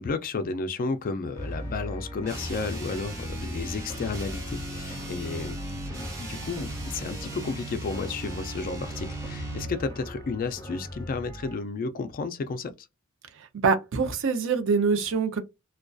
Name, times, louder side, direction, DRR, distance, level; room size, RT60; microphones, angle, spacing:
voice 1, 0.0-12.7, left 4 dB, 40° left, 0.3 m, -32 dB
sound 1, 1.3-11.5, equal, 15° left, 1.0 m, -40 dB
sound 2, 2.2-9.8, right 1 dB, 15° right, 0.7 m, -37 dB
voice 2, 13.4-15.4, right 5 dB, 65° right, 0.5 m, -25 dB
2.5 x 2.2 x 2.3 m
head